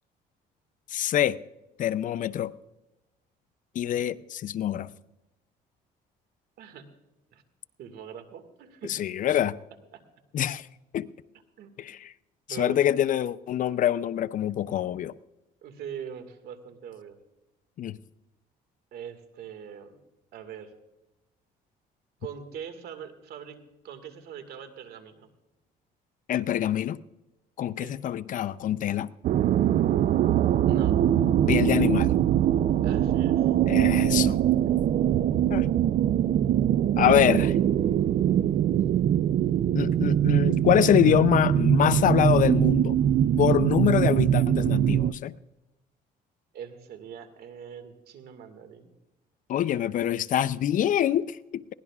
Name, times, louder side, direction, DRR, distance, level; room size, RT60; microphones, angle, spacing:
voice 1, 0.9-1.4 1.8-2.5 3.7-4.9 8.9-9.5 10.3-10.7 10.9-11.1 11.8-12.1 12.6-15.1 17.8-18.0 26.3-27.0 27.6-29.1 31.5-32.1 33.7-34.4 35.5-35.7 37.0-37.6 39.7-43.0 43.4-45.3 49.5-51.7, left 11 dB, 50° left, 0.5 m, -25 dB
voice 2, 6.6-6.9 7.3-7.4 7.8-9.0 9.9-10.0 11.6-11.9 12.5-12.8 15.6-17.2 18.9-20.0 20.3-20.7 22.2-25.3 27.8-27.9 30.7-31.0 32.8-33.5 46.5-48.9, right 8 dB, 70° right, 1.9 m, -42 dB
sound 1, 29.2-45.1, right 10 dB, 50° right, 0.4 m, -22 dB
22.0 x 17.5 x 2.4 m
cardioid pair, 110°, 17 cm